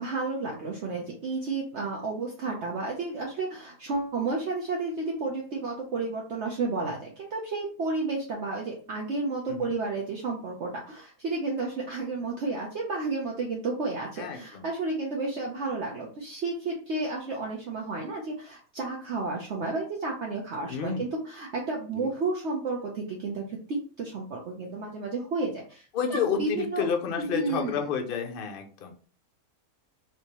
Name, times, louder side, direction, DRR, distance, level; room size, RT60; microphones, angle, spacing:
voice 1, 0.0-25.8 26.1-26.9 27.1-27.9, right 3 dB, 55° right, -1 dB, 0.9 m, -32 dB
voice 2, 14.2-14.7 20.7-21.1 21.9-22.1 25.9-28.9, left 7 dB, 55° left, 4 dB, 0.6 m, -30 dB
3.3 x 2.9 x 2.9 m, 0.40 s
omnidirectional pair, 1.6 m